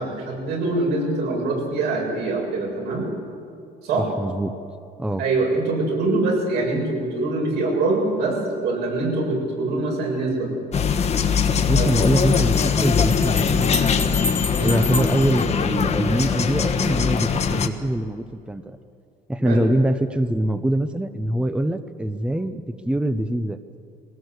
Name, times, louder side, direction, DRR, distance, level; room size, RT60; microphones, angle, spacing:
voice 1, 0.0-3.1 3.8-4.1 5.2-10.5 11.7-11.9 14.6-14.8 19.4-19.7, right 2 dB, 80° right, -1 dB, 7.2 m, -24 dB
voice 2, 4.2-4.5 5.0-5.2 11.6-14.2 14.6-18.8 19.3-23.6, right 1 dB, 5° right, 10 dB, 0.8 m, -24 dB
sound 1, 10.7-17.7, left 6 dB, 40° left, 1.4 m, -21 dB
Bell, 12.4-16.3, left 3 dB, 10° left, 1.6 m, -31 dB
21.5 x 18.0 x 8.1 m, 2.4 s
cardioid pair, 110°, 17 cm